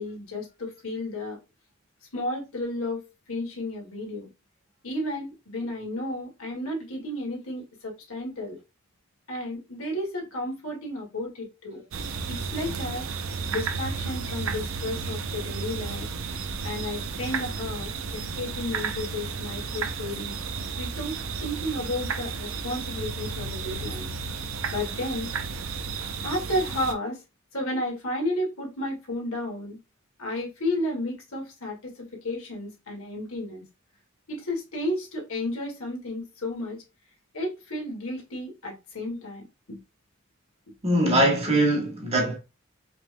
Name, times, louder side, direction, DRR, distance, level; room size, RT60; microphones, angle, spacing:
voice 1, 0.0-1.4 2.1-4.3 4.8-8.6 9.3-11.8 12.3-13.1 13.5-16.1 16.6-20.3 20.8-21.2 21.4-24.1 24.7-25.3 26.2-27.2 27.5-29.8 30.2-33.6 34.3-36.8 37.3-39.8, left 1 dB, 85° left, 1.9 m, -32 dB
sound 1, 11.9-26.9, right 5 dB, 70° right, 0.6 m, -33 dB
voice 2, 40.8-42.4, right 1 dB, 30° right, 1.5 m, -22 dB
4.9 x 3.4 x 2.2 m
head